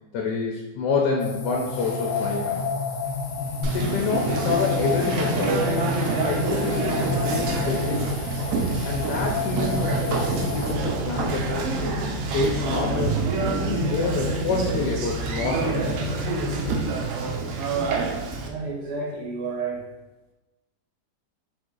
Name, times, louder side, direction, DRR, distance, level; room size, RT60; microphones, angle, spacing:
voice 1, 0.1-2.7 3.7-5.9 6.2-8.1 8.8-11.7 12.2-16.0, left 3 dB, 85° left, -1 dB, 1.2 m, -28 dB
sound 1, 1.2-10.7, left 4 dB, 65° left, 0.8 m, -29 dB
sound 2, 3.0-17.2, left 3 dB, 45° left, 1.2 m, -35 dB
Conversation, 3.6-18.5, right 4 dB, 70° right, 0.8 m, -27 dB
voice 2, 18.4-19.8, right 4 dB, 85° right, -1 dB, 1.5 m, -31 dB
3.8 x 2.5 x 3.7 m, 1.1 s
omnidirectional pair, 1.8 m